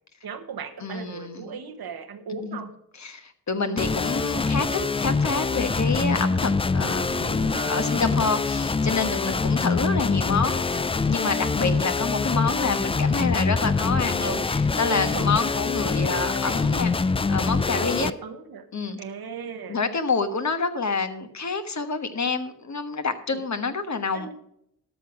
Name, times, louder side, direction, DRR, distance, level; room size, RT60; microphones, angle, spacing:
voice 1, 0.2-2.7 7.3-8.1 9.3-9.4 11.4-11.5 14.9-15.6 15.9-16.6 17.7-18.7 19.0-19.8 23.3-23.4 24.1-24.3, right 6 dB, 80° right, 8 dB, 1.1 m, -37 dB
voice 2, 0.8-1.6 2.4-2.6 3.0-18.1 18.7-19.0 19.7-24.3, left 4 dB, 50° left, 8 dB, 1.3 m, -28 dB
sound 1, 3.8-18.1, left 4 dB, 15° left, 0.3 m, -24 dB
12.5 x 6.2 x 5.9 m, 0.75 s
cardioid pair, 55°, 37 cm